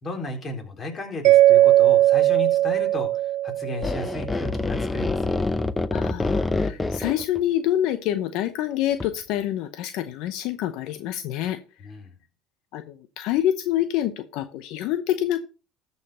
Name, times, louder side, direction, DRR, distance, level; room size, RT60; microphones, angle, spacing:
voice 1, 0.0-5.3 11.8-12.1, left 2 dB, 35° left, 3 dB, 3.9 m, -34 dB
Mallet percussion, 1.2-4.2, right 14 dB, 65° right, 0.6 m, -18 dB
sound 1, 3.8-7.4 9.0-9.1, left 3 dB, 15° left, 0.7 m, -26 dB
voice 2, 5.9-11.6 12.7-15.4, left 12 dB, 70° left, 10 dB, 0.8 m, -26 dB
13.5 x 5.7 x 4.4 m, 0.33 s
supercardioid pair, 100°, 0 cm